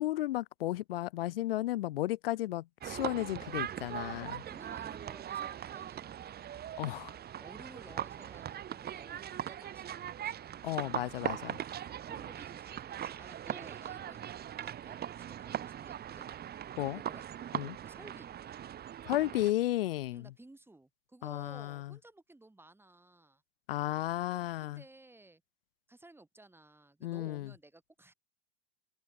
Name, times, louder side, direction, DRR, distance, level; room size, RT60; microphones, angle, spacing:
voice 1, 0.0-4.4 6.8-7.1 10.6-11.6 16.8-17.0 17.5-17.8 19.0-20.3 21.2-21.9 23.7-24.8 27.0-27.5, left 15 dB, 75° left, 0.9 m, -34 dB
sound 1, 2.8-19.5, right 10 dB, 35° right, 2.5 m, -40 dB
voice 2, 4.5-6.6 7.4-10.4 11.8-14.3 14.6-15.0 15.3-16.3 16.9-17.2 17.8-18.3 20.1-23.4 24.6-25.4 25.9-28.1, right 2 dB, 10° right, 7.3 m, -55 dB
hypercardioid pair, 90°, 29 cm